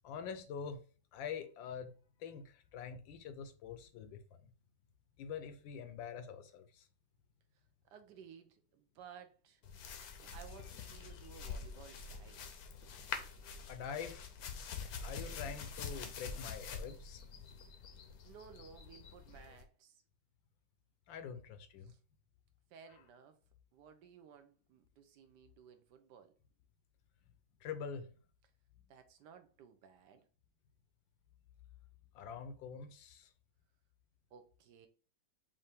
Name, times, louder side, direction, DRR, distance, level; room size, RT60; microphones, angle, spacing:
voice 1, 0.0-0.8 1.1-1.9 2.2-4.5 5.2-6.9 13.7-14.3 15.0-17.2 21.1-21.9 27.6-28.1 32.1-33.3, left 6 dB, 80° left, 1.4 m, -45 dB
voice 2, 7.9-9.6 10.2-12.5 18.2-20.0 21.8-22.0 22.7-23.4 23.7-26.3 28.9-30.3 34.3-34.9, right 7 dB, 75° right, 1.1 m, -57 dB
sound 1, 9.6-19.6, left 5 dB, 65° left, 1.0 m, -46 dB
5.5 x 2.5 x 3.4 m
omnidirectional pair, 2.1 m